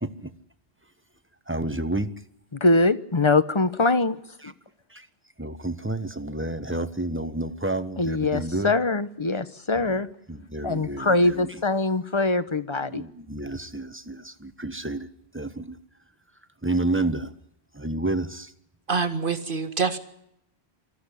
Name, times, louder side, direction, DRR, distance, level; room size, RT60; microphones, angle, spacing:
voice 1, 1.5-2.1 4.4-4.5 4.9-5.1 5.4-8.7 9.8-10.0 10.3-11.6 12.8-15.1 15.3-15.8 16.6-17.3 17.7-18.5, right 2 dB, 10° right, 12 dB, 1.2 m, -30 dB
voice 2, 2.5-4.5 8.0-10.1 10.6-13.0, left 2 dB, 30° left, 14 dB, 1.1 m, -23 dB
voice 3, 18.9-20.0, right 5 dB, 50° right, 9 dB, 2.0 m, -25 dB
25.0 x 14.5 x 10.0 m, 0.77 s
omnidirectional pair, 1.1 m